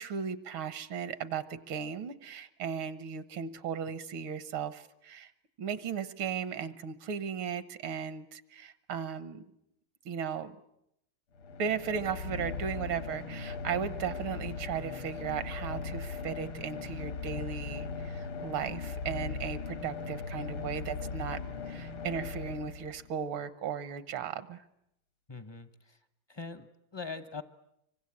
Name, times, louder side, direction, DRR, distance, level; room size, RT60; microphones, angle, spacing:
voice 1, 0.0-5.3 5.6-9.4 10.1-10.5 11.6-24.6, right 7 dB, 85° right, 13 dB, 2.0 m, -36 dB
sound 1, 11.4-23.2, left 4 dB, 80° left, 2.3 m, -39 dB
voice 2, 25.3-26.0 26.3-27.4, left 4 dB, 30° left, 11 dB, 0.4 m, -42 dB
26.0 x 24.0 x 8.5 m, 0.79 s
omnidirectional pair, 2.2 m